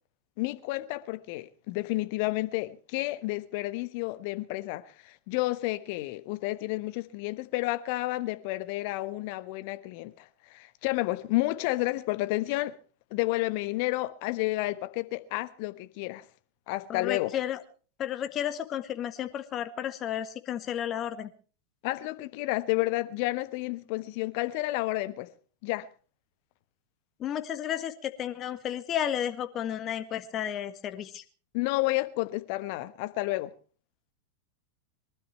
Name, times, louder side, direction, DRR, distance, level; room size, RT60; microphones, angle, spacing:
voice 1, 0.4-12.7 13.1-16.2 16.7-17.3 21.8-25.3 25.6-25.9 31.5-33.5, left 19 dB, 45° left, 1.2 m, -31 dB
voice 2, 16.9-17.6 18.0-21.3 27.2-31.2, left 10 dB, 30° left, 1.7 m, -32 dB
23.5 x 12.5 x 4.5 m
figure-of-eight pair, 90°, 0 cm